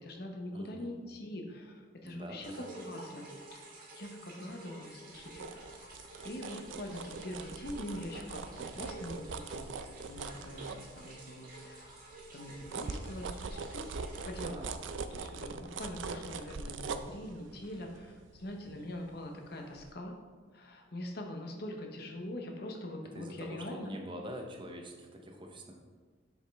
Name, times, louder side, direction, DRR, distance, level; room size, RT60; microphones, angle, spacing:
voice 1, 0.0-2.5 2.8-3.2 3.6-5.9 6.2-9.7 10.1-13.9 14.2-14.6 15.1-20.1 20.5-23.9, left 1 dB, 55° left, 2 dB, 0.9 m, -43 dB
voice 2, 0.5-1.0 2.0-2.7 14.4-14.7 23.1-25.8, equal, 25° right, 2 dB, 0.7 m, -45 dB
sound 1, 2.4-14.4, right 2 dB, 50° right, 1.8 m, -51 dB
sound 2, 5.1-11.4 11.8-19.4 19.8-19.9, right 4 dB, 85° right, 0.4 m, -42 dB
7.3 x 5.2 x 3.5 m, 1.5 s
head